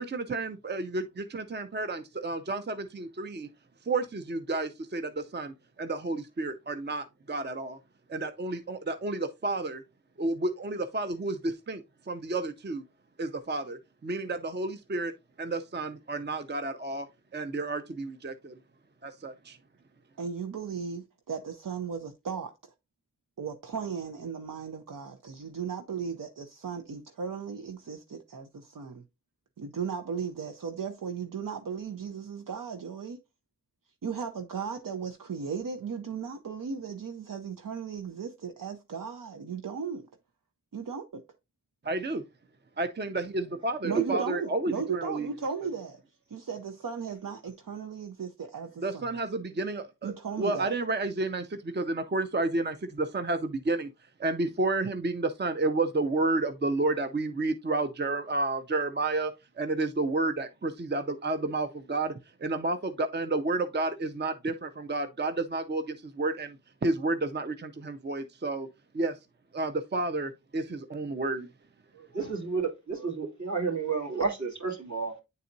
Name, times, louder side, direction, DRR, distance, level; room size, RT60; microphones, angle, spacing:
voice 1, 0.0-3.5 3.8-7.8 8.1-9.8 10.2-12.8 13.2-15.1 15.4-17.1 17.3-18.5 19.0-19.6 41.8-42.2 42.8-45.3 48.8-62.1 62.4-68.7 68.9-69.2 69.5-71.5, right 2 dB, 30° right, 0.5 m, -31 dB
voice 2, 20.2-22.5 23.4-29.0 29.6-33.2 34.0-40.1 40.7-41.2 43.8-46.0 46.3-49.1 50.0-50.7, right 6 dB, 75° right, 0.7 m, -36 dB
voice 3, 72.1-75.1, right 5 dB, 60° right, 2.2 m, -30 dB
9.3 x 4.1 x 2.6 m
wide cardioid pair, 50°, 33 cm